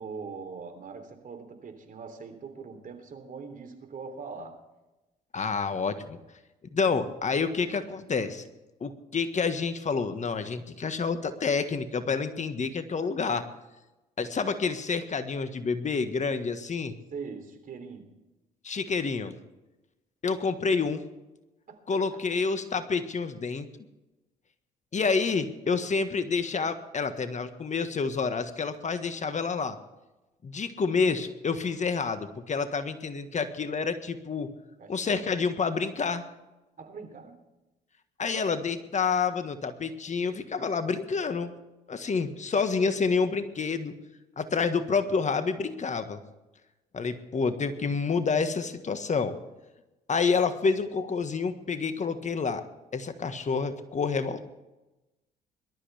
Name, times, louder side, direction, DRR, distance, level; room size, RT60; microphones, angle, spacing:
voice 1, 0.0-4.6 17.1-18.2 21.7-21.8 22.1-22.2 34.8-35.3 36.8-37.4 50.3-50.5, right 5 dB, 45° right, 6 dB, 3.4 m, -42 dB
voice 2, 5.3-6.2 6.7-8.4 8.8-13.5 14.2-16.9 18.6-19.3 20.2-21.0 21.9-23.7 24.9-29.8 30.4-34.5 34.9-36.2 38.2-41.5 41.9-43.9 44.4-46.2 46.9-49.3 50.1-52.6 52.9-54.5, left 5 dB, 40° left, 10 dB, 1.6 m, -28 dB
21.5 x 13.0 x 3.5 m, 1.0 s
hypercardioid pair, 55°, 19 cm